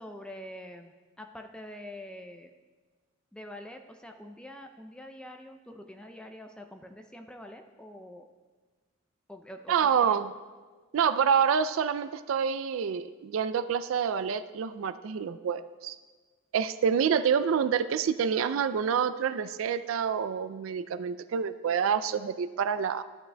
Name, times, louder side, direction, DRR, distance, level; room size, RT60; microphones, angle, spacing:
voice 1, 0.0-2.5 3.3-8.3 9.3-10.2, left 1 dB, 5° left, 5 dB, 0.4 m, -45 dB
voice 2, 9.7-10.3 10.9-16.0 16.5-23.0, right 7 dB, 70° right, 13 dB, 0.3 m, -27 dB
12.5 x 8.7 x 2.2 m, 1.4 s
head